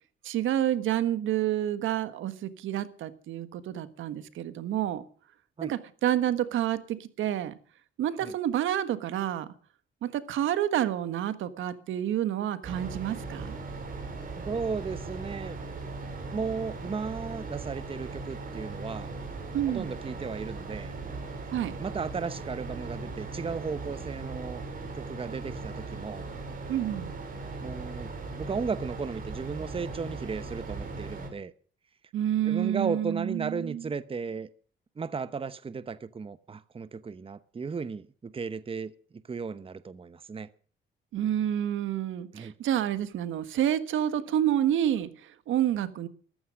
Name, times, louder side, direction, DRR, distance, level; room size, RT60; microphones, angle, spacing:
voice 1, 0.2-5.0 5.6-7.6 8.0-9.5 10.0-13.5 19.5-19.9 21.5-21.7 26.7-27.1 32.1-33.9 41.1-46.1, right 11 dB, 80° right, 1.5 m, -29 dB
sound 1, 12.6-31.3, right 3 dB, 45° right, 6.1 m, -38 dB
voice 2, 14.4-15.6 16.3-19.1 19.7-20.9 21.8-24.6 24.9-26.3 27.6-28.1 28.4-31.5 32.4-34.5 35.0-38.9 39.3-40.5 42.3-42.5, right 5 dB, 25° right, 0.9 m, -35 dB
14.5 x 14.0 x 6.4 m
cardioid pair, 90°, 20 cm